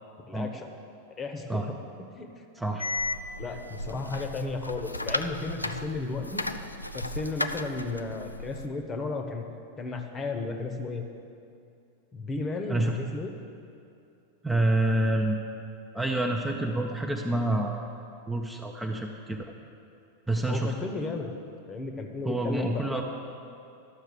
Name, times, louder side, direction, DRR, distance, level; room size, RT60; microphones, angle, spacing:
voice 1, 0.3-0.7 1.2-1.7 2.2-2.3 3.4-6.4 6.9-9.4 9.8-11.0 12.1-13.3 20.5-21.3 21.7-23.0, left 3 dB, 20° left, 5 dB, 1.0 m, -34 dB
voice 2, 2.5-2.9 3.9-4.1 12.7-13.0 14.4-15.4 15.9-17.9 18.3-19.4 20.3-20.7 22.2-23.0, right 1 dB, 5° right, 1 dB, 0.6 m, -27 dB
sound 1, 2.8-8.7, left 2 dB, 85° left, 0.4 m, -34 dB
12.0 x 6.5 x 6.6 m, 2.5 s
figure-of-eight pair, 90°, 0 cm